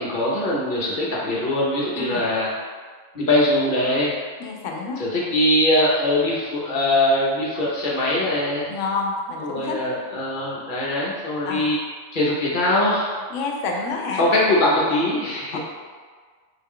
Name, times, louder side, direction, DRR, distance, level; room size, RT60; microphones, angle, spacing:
voice 1, 0.0-2.5 3.1-4.2 5.0-8.7 9.4-11.8 12.1-13.1 14.2-15.6, left 1 dB, 45° left, -5 dB, 0.8 m, -22 dB
voice 2, 4.4-5.0 8.7-9.8 11.4-11.7 13.3-14.2 15.5-15.6, left 4 dB, 75° left, 1 dB, 0.9 m, -28 dB
3.8 x 2.2 x 3.5 m, 1.6 s
omnidirectional pair, 1.3 m